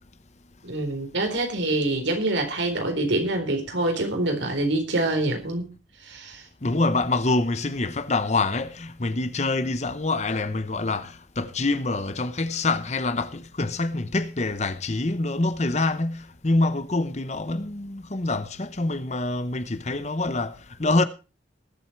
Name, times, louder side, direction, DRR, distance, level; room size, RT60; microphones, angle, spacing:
voice 1, 0.6-5.6 6.0-6.4, right 2 dB, 80° right, 4.1 m, -25 dB
voice 2, 6.6-21.0, left 2 dB, 35° left, 0.9 m, -26 dB
20.0 x 7.9 x 4.6 m
head